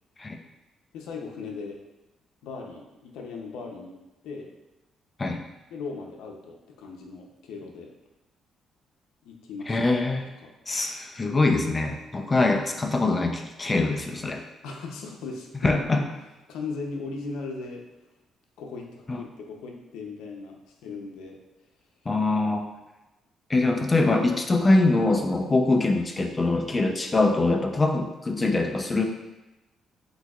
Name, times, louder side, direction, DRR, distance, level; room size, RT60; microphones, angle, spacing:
voice 1, 0.9-1.8 2.4-4.0 4.2-4.5 5.7-7.9 9.2-9.8 10.4-10.5 14.6-16.0 16.5-17.8 18.6-21.4, left 4 dB, 90° left, 0 dB, 0.7 m, -38 dB
voice 2, 9.7-10.3 10.7-14.4 15.6-16.0 19.1-19.2 22.1-22.7 23.5-29.1, left 2 dB, 25° left, 4 dB, 0.5 m, -23 dB
7.9 x 2.8 x 2.4 m, 1.0 s
cardioid pair, 90°, 0 cm